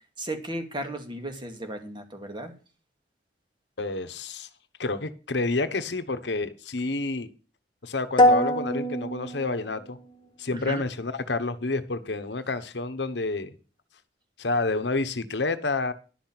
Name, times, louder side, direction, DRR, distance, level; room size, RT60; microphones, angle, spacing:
voice 1, 0.2-2.5 10.5-10.8, right 1 dB, 25° right, 5 dB, 2.4 m, -35 dB
voice 2, 3.8-4.5 4.8-7.3 7.8-10.0 10.4-13.6 14.4-15.9, left 3 dB, 80° left, 11 dB, 1.2 m, -29 dB
sound 1, 8.2-10.2, left 1 dB, 25° left, 1.6 m, -23 dB
11.5 x 6.0 x 8.7 m, 0.35 s
head